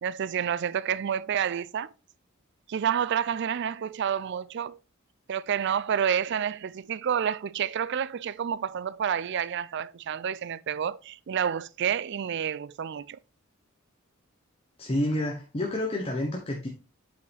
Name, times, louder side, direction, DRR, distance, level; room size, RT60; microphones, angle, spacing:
voice 1, 0.0-1.9 2.7-4.8 5.3-13.2, right 8 dB, 55° right, 0.4 m, -29 dB
voice 2, 14.8-16.7, left 1 dB, 30° left, 1.0 m, -29 dB
8.2 x 5.2 x 3.4 m
head